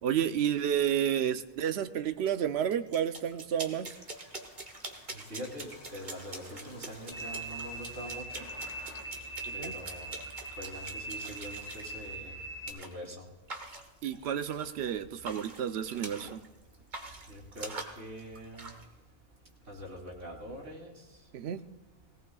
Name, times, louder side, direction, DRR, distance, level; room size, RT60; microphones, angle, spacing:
voice 1, 0.0-4.0 9.6-9.7 14.0-16.4 21.3-21.6, right 9 dB, 65° right, 9 dB, 0.9 m, -31 dB
sound 1, 2.7-11.9 12.7-12.9 13.5-14.9 15.2-16.5 16.7-18.8, right 2 dB, 40° right, 1.4 m, -44 dB
sound 2, 3.8-12.2, left 2 dB, 70° left, 2.2 m, -55 dB
voice 2, 5.1-8.5 9.5-10.1 10.6-12.3 12.7-13.2 17.3-18.7 19.7-21.0, equal, 85° right, -4 dB, 3.5 m, -44 dB
sound 3, 7.1-12.7, right 2 dB, 35° left, 5.3 m, -41 dB
19.5 x 18.0 x 2.3 m, 1.0 s
omnidirectional pair, 1.2 m